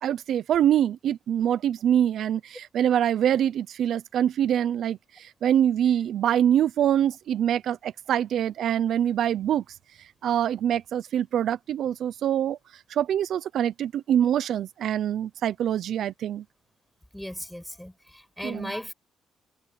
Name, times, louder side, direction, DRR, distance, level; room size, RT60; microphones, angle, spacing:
voice 1, 0.0-9.6 10.2-12.6 12.9-16.4 18.4-18.7, right 10 dB, 70° right, 0.7 m, -24 dB
voice 2, 17.1-18.9, left 1 dB, 5° left, 5.6 m, -37 dB
cardioid pair, 90°, 0 cm